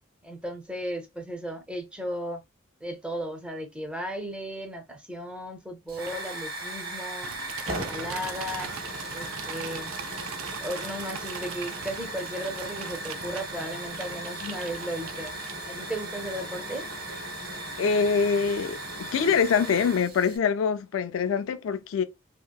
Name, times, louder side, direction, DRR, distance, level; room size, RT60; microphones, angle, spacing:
voice 1, 0.2-2.4 2.8-7.3 7.7-8.7 9.1-9.9 10.6-15.4 15.7-16.9, equal, 5° right, 0.4 m, -35 dB
Hiss / Fire, 5.9-20.4, right 1 dB, 45° right, 0.8 m, -37 dB
sound 1, 7.2-15.9, right 7 dB, 75° right, 0.5 m, -41 dB
voice 2, 17.8-22.0, left 6 dB, 65° left, 0.3 m, -24 dB
2.8 x 2.8 x 2.2 m
head